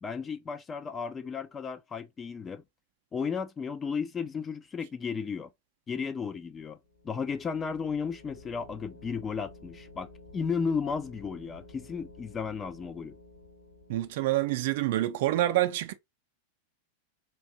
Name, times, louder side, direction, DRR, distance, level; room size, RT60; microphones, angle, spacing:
voice 1, 0.0-2.6 3.1-5.5 5.9-6.8 7.0-13.2, left 5 dB, 20° left, 0.3 m, -34 dB
sound 1, 6.8-14.5, left 2 dB, 80° left, 2.5 m, -52 dB
voice 2, 13.9-15.9, right 15 dB, 50° right, 0.4 m, -27 dB
4.4 x 2.6 x 2.7 m
figure-of-eight pair, 90°, 0 cm